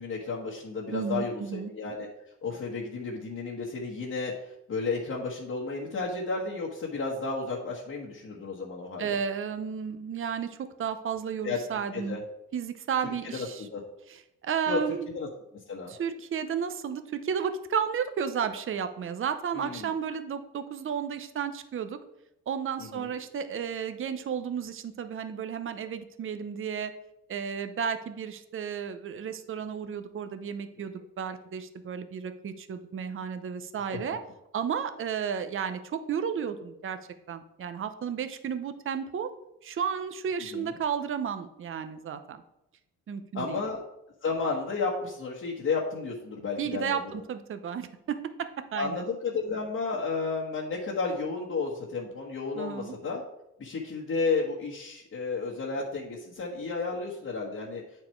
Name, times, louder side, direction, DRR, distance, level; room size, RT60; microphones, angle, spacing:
voice 1, 0.0-2.1 2.4-4.3 4.7-9.1 11.4-11.6 11.9-12.2 13.0-13.5 13.7-13.8 14.7-14.8 15.1-15.3 15.7-15.9 19.5-19.9 22.8-23.1 33.9-34.0 40.5-40.7 43.3-43.8 44.2-47.0 48.7-53.2 53.6-57.8, left 4 dB, 45° left, -4 dB, 1.4 m, -32 dB
voice 2, 0.9-1.7 9.0-12.2 12.5-13.7 14.1-15.1 15.9-22.0 22.5-26.9 27.3-34.2 34.5-37.0 37.3-39.3 39.6-42.4 43.1-43.6 46.6-49.0 52.6-52.9, right 7 dB, 45° right, 10 dB, 0.7 m, -33 dB
8.6 x 4.6 x 4.5 m, 0.83 s
cardioid pair, 90°, 30 cm